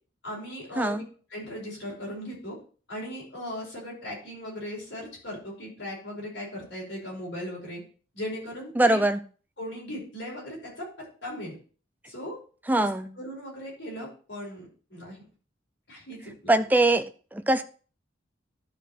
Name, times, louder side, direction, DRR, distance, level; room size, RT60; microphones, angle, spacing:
voice 1, 0.2-1.0 1.3-2.6 2.9-7.8 8.1-9.0 9.6-11.6 12.1-12.4 12.8-12.9 13.2-15.2 15.9-16.5, equal, 60° left, 5.4 m, -38 dB
voice 2, 8.8-9.2 12.7-13.1 16.5-17.6, right 2 dB, 10° right, 0.5 m, -22 dB
12.0 x 5.1 x 4.4 m
head